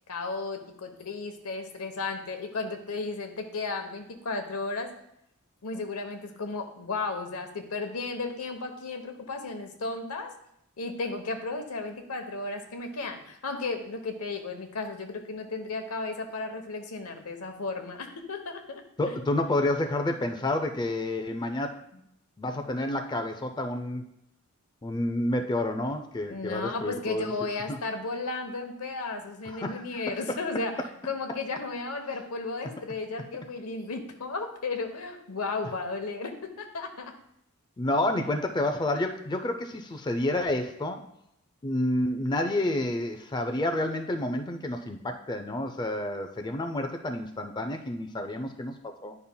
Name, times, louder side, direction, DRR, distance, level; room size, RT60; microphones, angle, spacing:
voice 1, 0.1-4.9 5.6-10.3 10.8-19.2 26.3-30.7 31.0-37.1 38.2-38.3, left 3 dB, 90° left, 5 dB, 0.9 m, -34 dB
voice 2, 19.0-22.0 22.4-24.0 24.8-27.8 29.5-30.1 37.8-41.0 41.6-49.2, left 1 dB, 20° left, 5 dB, 0.4 m, -29 dB
10.0 x 5.4 x 2.2 m, 0.75 s
head